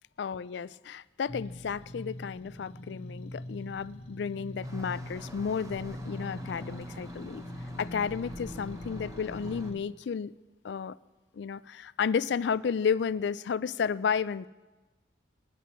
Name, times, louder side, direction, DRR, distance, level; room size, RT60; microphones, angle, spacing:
voice 1, 0.2-7.4 7.8-10.3 10.6-11.0 11.3-14.5, left 6 dB, 70° left, 18 dB, 0.3 m, -32 dB
sound 1, 1.3-9.8, left 1 dB, 35° left, 1.1 m, -42 dB
sound 2, 4.6-9.7, equal, 20° right, 0.8 m, -45 dB
20.0 x 10.0 x 4.4 m, 1.2 s
head